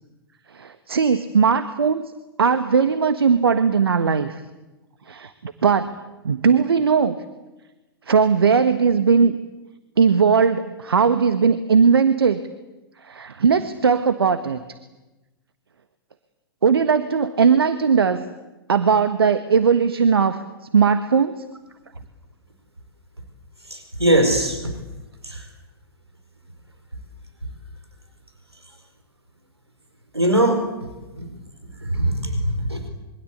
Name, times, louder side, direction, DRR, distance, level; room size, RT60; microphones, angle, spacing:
voice 1, 0.5-2.0 2.4-4.4 5.1-5.9 6.2-7.2 8.1-9.4 10.0-12.4 13.0-14.6 16.6-18.2 18.7-20.4 20.7-21.4, right 6 dB, 70° right, 11 dB, 1.5 m, -18 dB
voice 2, 23.7-24.6 25.3-25.4 30.1-30.6 31.9-32.8, right 1 dB, 85° right, 5 dB, 4.6 m, -20 dB
27.0 x 24.0 x 8.2 m, 1.1 s
figure-of-eight pair, 110°, 13 cm